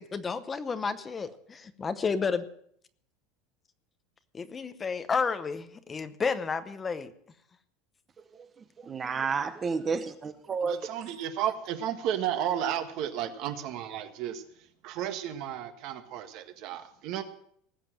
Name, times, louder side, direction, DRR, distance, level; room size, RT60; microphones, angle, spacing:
voice 1, 0.0-2.4 4.3-7.1, left 5 dB, 15° left, 11 dB, 0.8 m, -31 dB
voice 2, 8.3-10.8, right 5 dB, 15° right, 11 dB, 0.8 m, -31 dB
voice 3, 10.7-17.2, right 10 dB, 45° right, 8 dB, 1.5 m, -33 dB
19.0 x 7.5 x 7.4 m, 0.66 s
cardioid pair, 175°, 0 cm